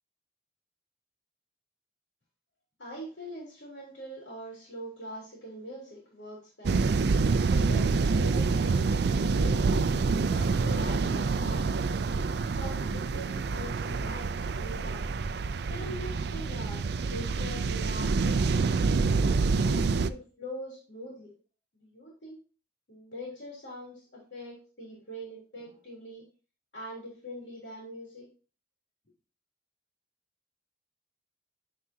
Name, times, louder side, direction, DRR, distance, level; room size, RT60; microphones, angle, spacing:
voice 1, 2.8-6.8 7.5-9.8 10.3-11.9 12.6-15.1 15.7-16.8 17.1-18.6 19.3-21.3 21.7-22.4 22.9-26.2 26.7-28.3, equal, 80° left, -4 dB, 3.3 m, -43 dB
sound 1, 6.6-20.1, right 4 dB, 60° right, 0.4 m, -27 dB
9.8 x 4.8 x 2.8 m, 0.37 s
head